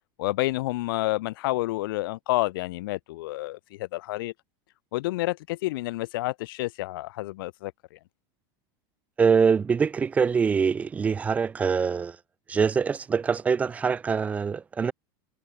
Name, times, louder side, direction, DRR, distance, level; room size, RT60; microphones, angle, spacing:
voice 1, 0.2-4.3 4.9-8.0, left 19 dB, 80° left, 0.4 m, -29 dB
voice 2, 9.2-12.2 12.5-14.9, right 6 dB, 10° right, 0.4 m, -24 dB
supercardioid pair, 160°, 12 cm